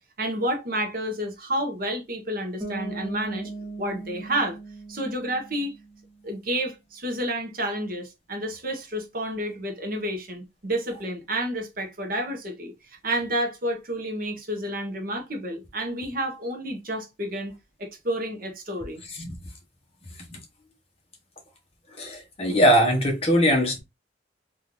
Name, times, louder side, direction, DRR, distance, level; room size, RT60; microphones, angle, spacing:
voice 1, 0.2-3.5 3.8-4.6 4.9-5.7 6.2-17.5 17.8-19.0, right 1 dB, 50° right, 0.9 m, -30 dB
Bass guitar, 2.6-6.3, right 3 dB, 15° right, 1.1 m, -38 dB
voice 2, 22.0-23.8, equal, 30° left, 1.1 m, -21 dB
3.7 x 2.6 x 2.9 m
head